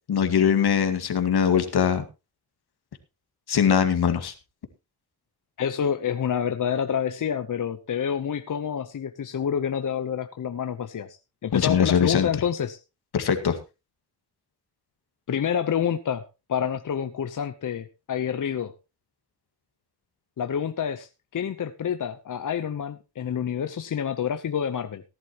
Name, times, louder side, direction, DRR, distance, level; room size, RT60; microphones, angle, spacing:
voice 1, 0.1-2.0 3.5-4.3 11.5-12.3 13.1-13.6, left 7 dB, 75° left, 8 dB, 2.0 m, -21 dB
voice 2, 5.6-12.8 15.3-16.2 16.5-18.7 20.4-25.0, left 8 dB, 50° left, 9 dB, 0.9 m, -28 dB
18.0 x 11.5 x 3.0 m, 0.28 s
cardioid pair, 95°, 39 cm